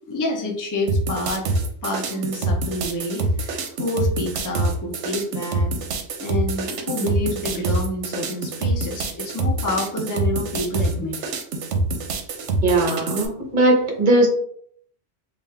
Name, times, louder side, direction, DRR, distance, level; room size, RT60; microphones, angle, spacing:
voice 1, 0.1-1.6 1.8-5.7 6.2-11.2, left 1 dB, 25° left, 0 dB, 0.5 m, -28 dB
sound 1, 0.9-13.3, right 2 dB, 75° right, 0.9 m, -25 dB
voice 2, 12.6-14.3, right 2 dB, 45° right, 0 dB, 1.0 m, -18 dB
3.5 x 2.4 x 3.3 m, 0.64 s
omnidirectional pair, 1.2 m